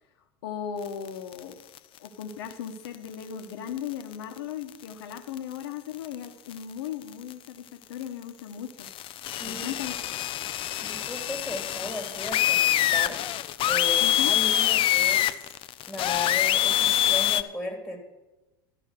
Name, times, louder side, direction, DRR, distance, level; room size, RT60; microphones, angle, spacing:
voice 1, 0.4-1.6 2.0-8.9 9.4-10.0 14.0-14.4, left 9 dB, 70° left, 6 dB, 1.3 m, -37 dB
sound 1, 1.1-1.8 2.0-2.2 2.5-2.6 2.8-2.9 3.8-4.1 4.7-4.8 5.1-5.4 6.0-6.2 6.5-6.6 7.0-7.3 8.7-17.4, left 12 dB, 40° left, 0.7 m, -25 dB
voice 2, 9.4-9.8 10.8-13.2 13.7-15.5 15.9-18.0, left 1 dB, ahead, 2 dB, 3.2 m, -36 dB
13.0 x 5.7 x 9.4 m, 1.0 s
hypercardioid pair, 80°, 13 cm